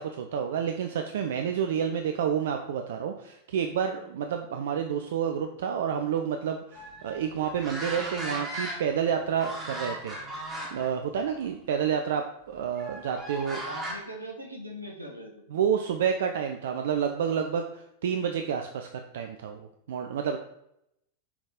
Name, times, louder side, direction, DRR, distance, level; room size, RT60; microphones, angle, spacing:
voice 1, 0.0-10.2 10.7-13.6 15.5-18.9 19.1-20.4, right 8 dB, 60° right, 5 dB, 0.5 m, -29 dB
sound 1, 6.7-9.1 9.4-10.9 11.3-11.5 12.8-13.9, right 1 dB, 20° right, 2.2 m, -37 dB
voice 2, 13.6-15.4, equal, 85° right, 0 dB, 1.3 m, -41 dB
5.9 x 4.1 x 4.8 m, 0.79 s
figure-of-eight pair, 90°, 0 cm